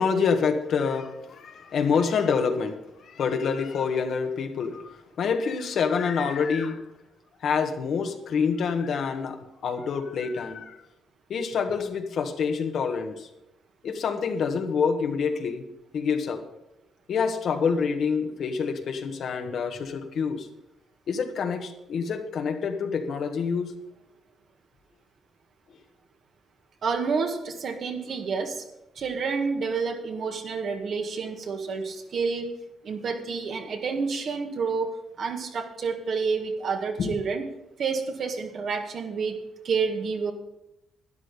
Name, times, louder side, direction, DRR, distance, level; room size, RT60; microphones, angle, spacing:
voice 1, 0.0-2.8 3.0-6.8 7.4-9.4 9.6-10.8 11.3-13.3 13.8-15.6 15.9-16.4 17.1-20.5 21.1-23.7 37.0-37.1, left 6 dB, 65° left, 5 dB, 1.5 m, -27 dB
voice 2, 26.8-28.6 28.9-32.5 32.8-37.5 37.8-40.3, right 5 dB, 60° right, 4 dB, 1.8 m, -29 dB
12.5 x 10.0 x 5.3 m, 0.91 s
cardioid pair, 90°, 0 cm